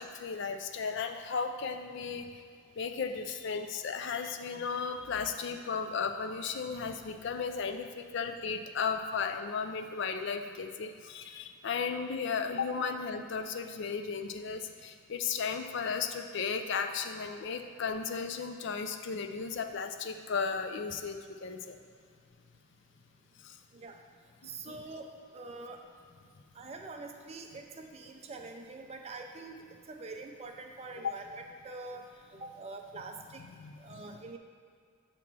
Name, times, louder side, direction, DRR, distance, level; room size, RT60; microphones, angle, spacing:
voice 1, 0.0-2.3 2.8-21.8 23.4-23.5 24.4-24.8 31.0-31.1 33.6-34.0, left 5 dB, 55° left, 7 dB, 0.4 m, -35 dB
voice 2, 24.4-25.8 26.6-29.5 29.9-32.0 32.3-33.4 33.8-34.4, right 3 dB, 30° right, 3 dB, 0.4 m, -45 dB
7.1 x 3.0 x 6.0 m, 2.2 s
head